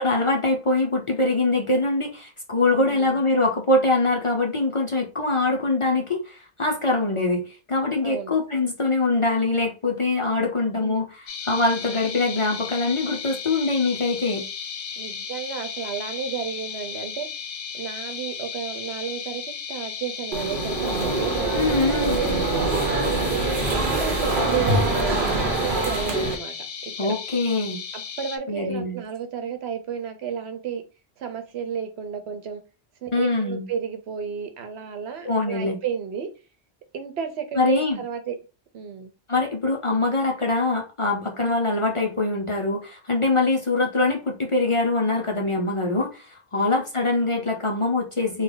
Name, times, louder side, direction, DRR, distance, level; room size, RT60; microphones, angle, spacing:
voice 1, 0.0-14.5 21.5-22.2 27.0-27.8 28.5-29.0 33.1-33.7 35.2-35.8 37.6-38.0 39.3-48.4, left 2 dB, 40° left, 0.5 m, -23 dB
voice 2, 2.7-3.2 8.0-8.4 10.8-11.0 15.0-17.3 17.7-22.8 23.3-26.5 27.0-27.1 27.9-30.8 31.2-32.6 33.0-36.3 36.9-38.3 38.7-39.1 46.6-46.7, right 7 dB, 85° right, 1.0 m, -32 dB
sound 1, 11.3-28.4, left 7 dB, 80° left, 0.8 m, -35 dB
sound 2, 20.3-26.4, right 2 dB, 60° right, 0.8 m, -24 dB
3.2 x 2.3 x 3.8 m
omnidirectional pair, 1.1 m